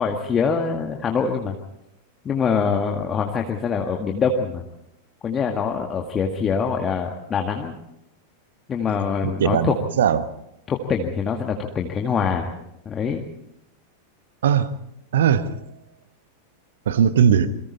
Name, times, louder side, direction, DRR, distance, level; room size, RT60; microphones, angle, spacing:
voice 1, 0.0-1.6 2.3-4.6 5.2-7.8 8.7-9.7 10.7-12.5 12.9-13.3, left 6 dB, 25° left, 1.9 m, -24 dB
voice 2, 9.2-10.3 14.4-14.7 15.1-15.6 16.9-17.5, right 8 dB, 60° right, 1.2 m, -19 dB
28.5 x 23.0 x 4.3 m
figure-of-eight pair, 90°, 0 cm